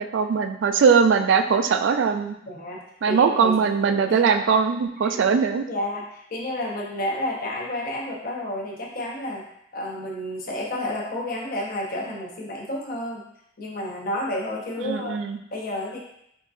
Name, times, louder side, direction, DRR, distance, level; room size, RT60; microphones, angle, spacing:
voice 1, 0.0-2.4 3.0-5.6 14.8-15.4, right 6 dB, 65° right, 7 dB, 0.3 m, -20 dB
voice 2, 2.5-3.6 4.1-4.2 5.0-5.2 5.7-9.4 9.7-13.2 13.6-15.1 15.5-16.0, left 1 dB, 50° left, -1 dB, 0.8 m, -30 dB
3.7 x 3.6 x 2.5 m, 0.74 s
head